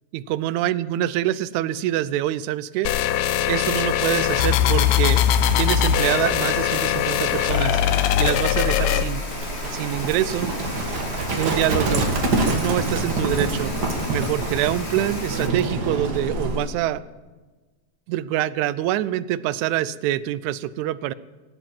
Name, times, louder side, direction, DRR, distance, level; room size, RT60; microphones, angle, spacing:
voice 1, 0.1-2.9 3.5-5.2 5.6-7.8 8.2-9.3 9.7-10.5 11.4-12.1 12.5-13.7 14.1-17.0 18.1-21.1, right 13 dB, 80° right, 17 dB, 1.9 m, -25 dB
sound 1, 2.8-9.0, left 10 dB, 75° left, 1.7 m, -21 dB
Rain, 4.0-15.5, left 2 dB, 25° left, 1.9 m, -34 dB
Livestock farm animals working animals, 9.3-16.7, right 2 dB, 40° right, 1.7 m, -26 dB
19.0 x 8.1 x 7.5 m, 1.3 s
omnidirectional pair, 3.6 m